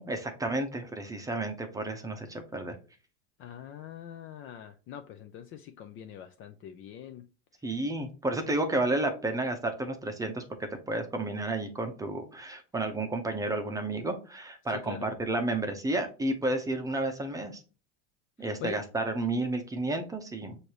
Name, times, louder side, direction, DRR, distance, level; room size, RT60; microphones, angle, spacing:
voice 1, 0.0-2.7 7.6-10.4 10.9-17.6 18.4-20.6, right 2 dB, 10° right, 0.7 m, -31 dB
voice 2, 3.4-7.3 14.8-15.1 18.4-18.8, left 9 dB, 35° left, 0.4 m, -43 dB
6.4 x 2.7 x 2.9 m
supercardioid pair, 145°, 38 cm